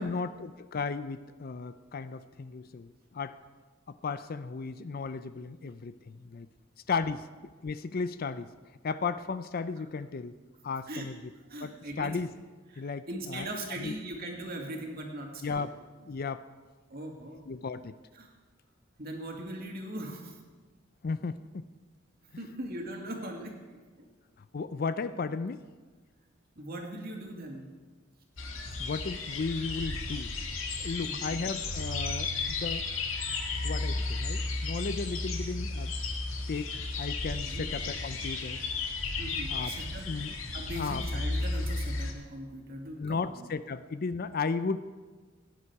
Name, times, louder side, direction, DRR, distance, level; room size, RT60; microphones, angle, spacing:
voice 1, 0.0-3.4 3.9-6.5 6.9-8.5 8.8-10.4 10.6-11.2 11.6-12.3 12.8-13.9 15.4-15.7 16.0-16.4 17.5-18.0 21.0-21.7 24.5-25.7 28.8-30.3 30.8-32.9 33.6-35.9 36.5-36.7 37.0-38.6 39.5-39.7 40.1-40.4 40.8-41.2 43.0-44.8, left 4 dB, 45° left, 13 dB, 0.5 m, -35 dB
voice 2, 11.5-12.2 12.7-15.7 16.9-17.5 18.2-18.3 19.0-20.4 22.4-24.1 26.6-27.7 31.0-31.4 37.4-37.7 39.2-40.1 40.5-43.5, right 1 dB, 50° right, 1 dB, 2.2 m, -40 dB
sound 1, 28.4-42.1, left 3 dB, 90° left, 1.6 m, -34 dB
17.5 x 10.0 x 4.7 m, 1.4 s
head